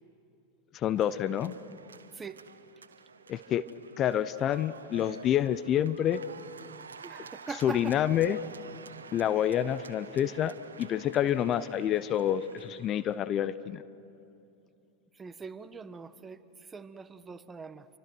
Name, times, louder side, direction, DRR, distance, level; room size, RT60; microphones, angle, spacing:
voice 1, 0.7-1.5 3.3-3.6 4.0-6.2 7.6-8.4 9.1-13.8, left 10 dB, 35° left, 15 dB, 0.7 m, -28 dB
sound 1, 1.0-13.4, right 6 dB, 90° right, 0.8 m, -50 dB
voice 2, 6.9-8.0 15.1-17.9, right 5 dB, 20° right, 12 dB, 1.1 m, -42 dB
28.0 x 24.5 x 6.1 m, 2.7 s
hypercardioid pair, 100°, 0 cm